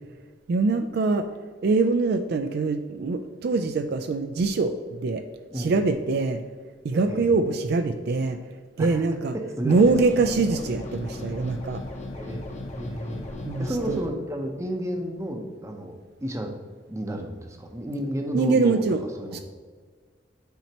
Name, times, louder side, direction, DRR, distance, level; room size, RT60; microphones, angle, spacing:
voice 1, 0.5-1.3 1.6-5.2 5.6-6.4 6.8-8.4 8.8-9.3 9.6-11.8 13.4-14.0 18.3-19.0 19.3-19.4, right 3 dB, 55° right, 7 dB, 0.3 m, -23 dB
voice 2, 5.5-5.8 6.9-7.3 8.8-9.0 9.3-9.7 12.1-12.5 12.8-13.3 13.6-16.5 16.9-19.4, equal, 15° right, 3 dB, 0.7 m, -32 dB
sound 1, 9.7-14.1, left 2 dB, 35° left, 0.9 m, -36 dB
9.0 x 4.2 x 2.9 m, 1.6 s
head